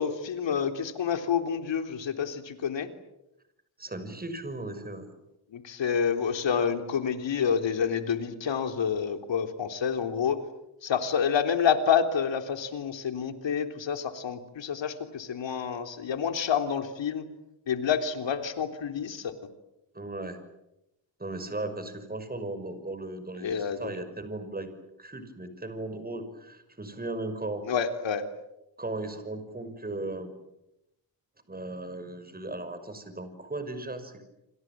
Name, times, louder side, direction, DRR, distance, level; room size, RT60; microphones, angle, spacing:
voice 1, 0.0-2.9 5.5-10.4 10.8-17.2 17.7-19.3 23.4-23.9 27.7-28.2, left 7 dB, 65° left, 7 dB, 3.6 m, -28 dB
voice 2, 3.8-5.1 19.9-20.4 21.2-24.7 25.0-27.6 28.8-30.3 31.5-34.2, right 2 dB, 20° right, 10 dB, 6.0 m, -37 dB
28.5 x 26.5 x 7.7 m, 0.88 s
cardioid pair, 90°, 47 cm